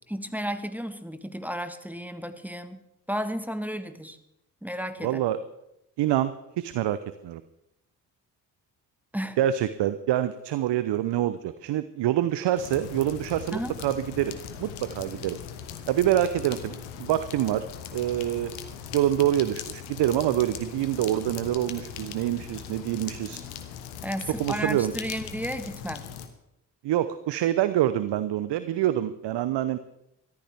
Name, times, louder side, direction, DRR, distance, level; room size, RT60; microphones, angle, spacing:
voice 1, 0.1-4.2 4.6-5.2 9.1-9.4 13.5-13.8 24.0-26.1, equal, 5° right, 10 dB, 1.5 m, -33 dB
voice 2, 5.0-5.4 6.0-7.0 7.2-7.4 9.4-15.4 15.9-17.7 17.9-18.5 18.9-23.4 24.4-24.9 26.8-29.8, right 12 dB, 55° right, 13 dB, 0.8 m, -26 dB
sound 1, 12.6-26.3, left 9 dB, 75° left, 1.4 m, -40 dB
21.0 x 14.0 x 3.5 m, 0.84 s
hypercardioid pair, 40°, 50 cm